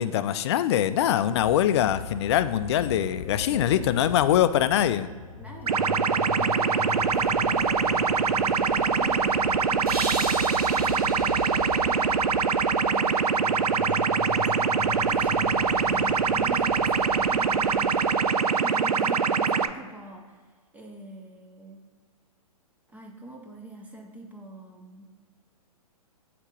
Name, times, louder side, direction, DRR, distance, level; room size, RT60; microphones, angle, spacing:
voice 1, 0.0-5.1, left 11 dB, 45° left, 13 dB, 0.4 m, -23 dB
sound 1, 1.3-18.3, left 5 dB, 25° left, 1.2 m, -39 dB
voice 2, 3.5-4.0 5.4-5.9 6.4-12.2 12.9-13.9 14.6-18.1 18.6-21.8 22.9-25.1, right 1 dB, 10° right, 1 dB, 0.6 m, -44 dB
sound 2, 5.7-19.7, right 6 dB, 90° right, 0.4 m, -24 dB
sound 3, 9.9-13.0, right 2 dB, 75° right, 1.6 m, -37 dB
8.0 x 2.9 x 5.2 m, 1.5 s
hypercardioid pair, 120°, 19 cm